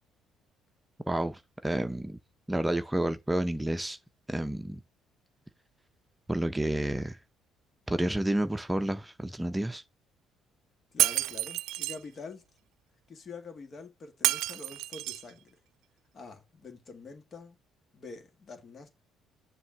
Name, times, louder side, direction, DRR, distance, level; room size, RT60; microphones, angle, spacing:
voice 1, 1.1-2.2 2.5-4.0 4.3-4.8 6.3-7.2 7.9-9.8, right 1 dB, 10° right, 0.8 m, -30 dB
voice 2, 10.9-12.4 13.1-15.6 16.1-17.6 17.9-18.9, left 4 dB, 45° left, 2.0 m, -46 dB
Shatter, 11.0-12.0 14.2-15.3, right 16 dB, 75° right, 0.3 m, -29 dB
7.1 x 3.1 x 5.8 m
supercardioid pair, 65°, 0 cm